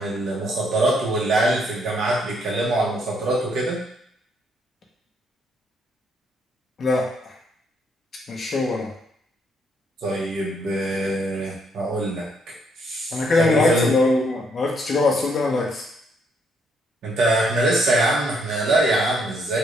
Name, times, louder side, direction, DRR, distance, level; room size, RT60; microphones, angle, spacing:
voice 1, 0.0-3.8 10.0-12.3 12.8-13.9 17.0-19.6, right 1 dB, 75° right, -4 dB, 1.3 m, -23 dB
voice 2, 6.8-7.3 8.3-8.9 13.1-15.8, left 2 dB, 45° left, -1 dB, 0.9 m, -21 dB
3.3 x 2.6 x 3.2 m, 0.67 s
cardioid pair, 90°, 0 cm